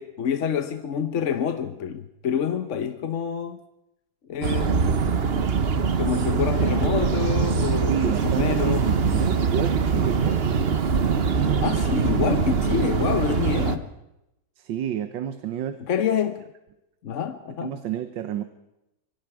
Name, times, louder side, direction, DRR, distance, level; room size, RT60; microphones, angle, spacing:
voice 1, 0.0-3.6 4.3-8.9 11.6-13.9 15.9-16.5 17.0-17.8, left 7 dB, 50° left, 1.0 m, -27 dB
sound 1, 4.4-13.8, right 6 dB, 40° right, 1.0 m, -23 dB
voice 2, 7.9-10.5 14.6-15.8 17.6-18.4, right 10 dB, 90° right, 1.7 m, -30 dB
26.0 x 23.5 x 4.8 m
omnidirectional pair, 1.9 m